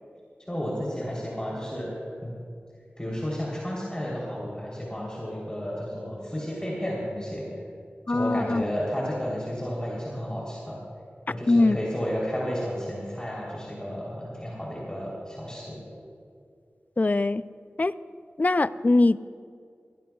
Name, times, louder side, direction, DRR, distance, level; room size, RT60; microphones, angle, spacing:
voice 1, 0.5-1.9 2.2-2.3 3.0-7.4 8.1-10.8 11.3-15.8, equal, 20° left, -5 dB, 3.5 m, -32 dB
voice 2, 8.1-8.6 11.5-11.8 17.0-17.4 17.8-17.9 18.4-19.2, left 2 dB, 40° left, 14 dB, 0.4 m, -21 dB
22.5 x 16.5 x 2.4 m, 2.3 s
wide cardioid pair, 50°, 4 cm